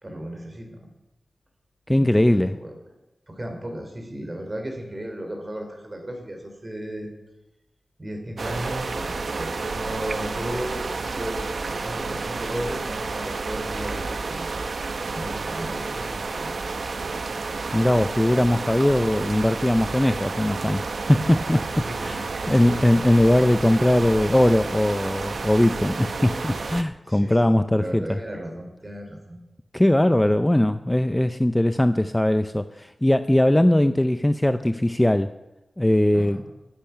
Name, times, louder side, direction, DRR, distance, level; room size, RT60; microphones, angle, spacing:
voice 1, 0.0-0.9 1.9-2.8 3.3-7.1 8.0-14.5 15.1-16.6 17.0-17.3 21.8-23.1 27.1-29.4 36.1-36.4, right 1 dB, 25° right, 4 dB, 3.4 m, -35 dB
voice 2, 1.9-2.5 17.7-28.2 29.7-35.3 35.8-36.4, left 1 dB, 10° left, 10 dB, 0.4 m, -20 dB
sound 1, 8.4-26.8, right 4 dB, 65° right, 0.8 m, -31 dB
21.0 x 8.7 x 5.8 m, 0.97 s
wide cardioid pair, 115°, 0 cm